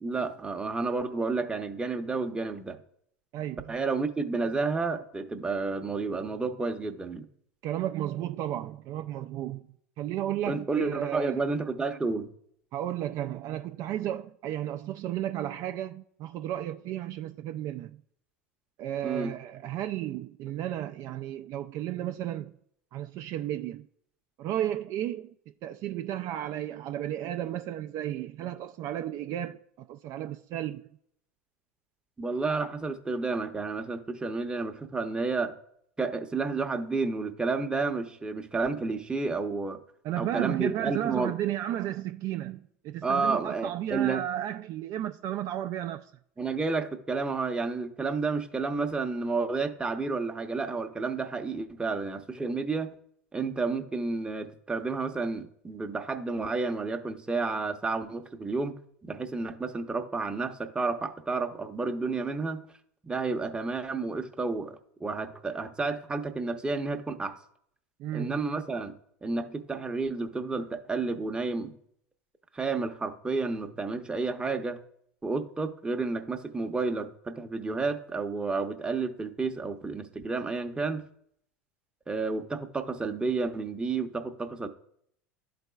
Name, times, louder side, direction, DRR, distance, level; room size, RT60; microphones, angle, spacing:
voice 1, 0.0-2.8 3.7-7.2 10.5-12.3 19.0-19.3 32.2-35.5 36.0-39.8 40.2-41.3 43.0-44.2 46.4-52.9 53.3-62.6 63.0-67.4 68.1-68.9 69.2-71.8 72.5-74.8 75.2-81.0 82.1-84.7, right 4 dB, 10° right, 0.7 m, -31 dB
voice 2, 3.3-3.7 7.6-9.7 10.0-11.4 12.7-18.0 18.8-22.5 22.9-23.9 24.4-25.3 25.6-30.9 40.0-46.1 68.0-68.4, right 12 dB, 45° right, 0.3 m, -33 dB
12.5 x 4.1 x 2.3 m
hypercardioid pair, 85°, 7 cm